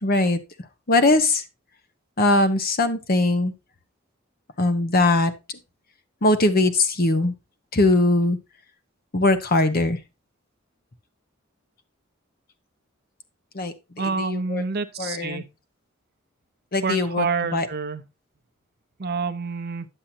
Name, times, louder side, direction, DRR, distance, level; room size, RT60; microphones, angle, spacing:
voice 1, 0.0-0.4 0.9-1.4 2.2-3.5 4.6-5.3 6.2-7.3 7.7-8.4 9.1-10.0 13.5-13.7 14.2-14.6 15.0-15.4 16.7-17.3 17.5-17.7, left 2 dB, 50° left, 1.1 m, -20 dB
voice 2, 14.0-15.5 16.8-18.0 19.0-19.9, right 4 dB, 55° right, 0.7 m, -27 dB
10.0 x 7.5 x 2.8 m
head